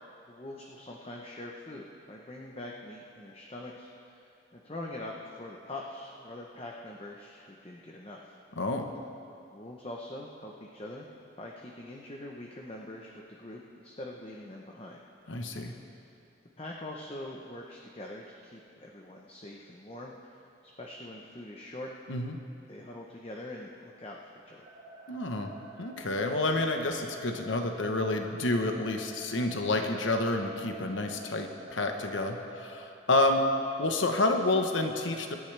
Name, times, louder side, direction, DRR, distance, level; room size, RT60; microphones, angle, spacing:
voice 1, 0.3-8.3 9.5-11.1 11.4-13.1 13.4-15.0 16.6-20.4 20.8-21.9 22.7-24.6, left 1 dB, 30° left, -1 dB, 0.9 m, -43 dB
voice 2, 8.6-8.9 15.3-15.7 22.1-22.4 25.1-25.5 25.8-33.5 33.8-35.3, left 2 dB, 85° left, 4 dB, 1.1 m, -29 dB
sound 1, 24.6-32.8, right 1 dB, 85° right, 2.0 m, -49 dB
25.5 x 10.5 x 3.4 m, 2.6 s
head